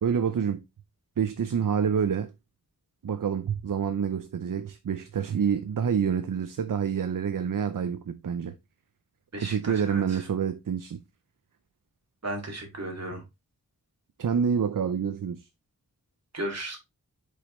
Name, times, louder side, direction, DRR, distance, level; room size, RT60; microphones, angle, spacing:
voice 1, 0.0-0.6 1.2-2.3 3.0-8.5 9.4-11.0 14.2-15.5, right 7 dB, 65° right, 0.6 m, -27 dB
voice 2, 9.3-10.2 12.2-13.2 16.3-16.8, right 1 dB, 45° right, 2.3 m, -35 dB
6.7 x 5.2 x 3.0 m
wide cardioid pair, 90°, 35 cm